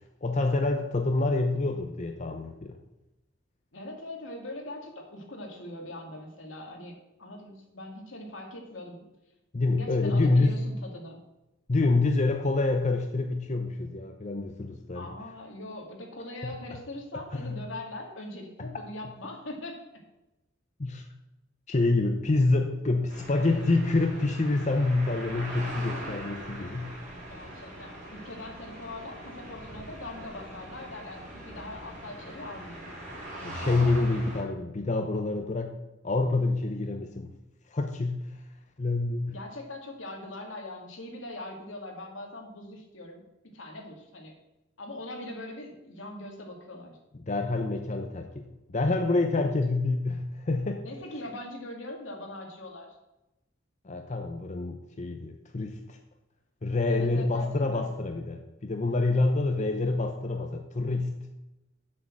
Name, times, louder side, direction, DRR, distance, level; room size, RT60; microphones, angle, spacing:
voice 1, 0.2-2.8 9.5-10.7 11.7-15.1 16.4-16.8 17.3-17.6 18.6-18.7 20.8-21.1 21.7-26.9 32.3-32.4 33.4-35.8 36.0-37.3 37.7-38.4 38.8-39.3 47.2-48.4 48.7-50.8 53.8-56.0 56.6-61.3, left 2 dB, 40° left, 4 dB, 0.7 m, -27 dB
voice 2, 3.7-9.0 9.7-11.2 14.9-19.8 27.3-32.8 39.3-44.3 44.8-47.0 49.4-49.5 50.8-53.0 56.9-57.9, left 1 dB, 75° left, 2 dB, 2.3 m, -41 dB
sound 1, 23.1-34.4, right 1 dB, 40° right, 4.2 m, -41 dB
7.6 x 6.4 x 7.5 m, 0.97 s
head